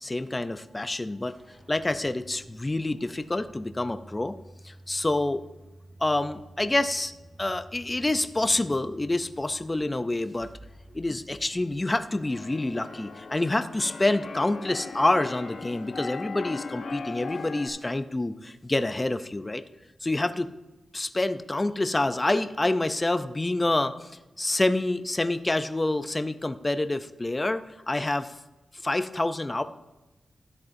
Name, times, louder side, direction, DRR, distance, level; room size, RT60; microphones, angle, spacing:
voice 1, 0.0-1.3 1.7-4.3 4.6-5.4 6.0-7.1 7.4-10.5 10.9-19.6 20.0-20.5 20.9-24.1 24.4-28.3 28.8-29.6, left 2 dB, 20° left, 10 dB, 0.4 m, -27 dB
sound 1, 1.3-12.6, right 1 dB, 25° right, 3.1 m, -51 dB
Keyboard (musical), 11.8-17.7, left 4 dB, 65° left, 1.0 m, -39 dB
13.0 x 10.5 x 2.6 m, 1.0 s
wide cardioid pair, 140°, 0 cm